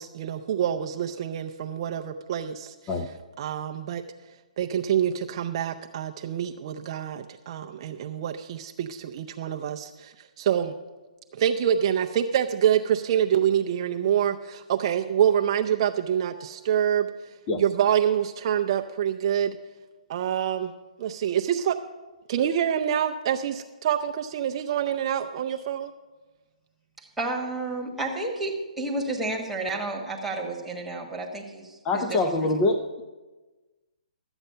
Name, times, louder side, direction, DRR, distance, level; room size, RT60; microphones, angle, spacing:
voice 1, 0.0-2.9 3.4-4.0 4.6-10.7 11.3-17.1 17.6-19.6 20.1-20.7 21.0-21.8 22.3-25.9, right 9 dB, 40° right, 4 dB, 0.5 m, -26 dB
voice 2, 27.2-32.5, right 2 dB, 5° right, -2 dB, 1.3 m, -31 dB
voice 3, 31.9-33.0, left 2 dB, 20° left, 5 dB, 0.5 m, -25 dB
12.5 x 8.0 x 5.5 m, 1.2 s
hypercardioid pair, 155°, 4 cm